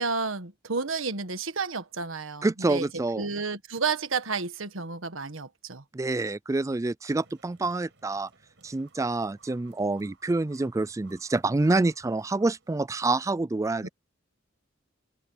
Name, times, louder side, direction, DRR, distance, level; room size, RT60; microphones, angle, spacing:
voice 1, 0.0-2.9 3.2-5.8 13.8-13.9, right 4 dB, 90° right, 1.5 m, -31 dB
voice 2, 2.4-3.3 5.9-8.3 8.6-13.9, right 2 dB, 15° right, 0.3 m, -27 dB
sound 1, 7.1-13.1, right 4 dB, 65° right, 5.5 m, -60 dB
open air
head